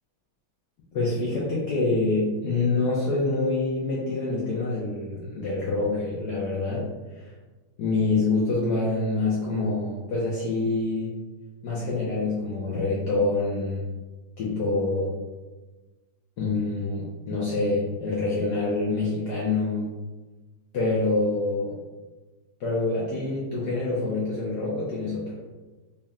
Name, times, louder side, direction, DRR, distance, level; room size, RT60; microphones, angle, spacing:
voice 1, 0.9-6.8 7.1-7.3 7.8-11.1 11.6-13.8 14.4-15.1 16.4-19.9 20.7-21.8 22.6-25.4, left 3 dB, 65° left, -6 dB, 1.1 m, -26 dB
4.1 x 2.1 x 3.6 m, 1.2 s
omnidirectional pair, 2.2 m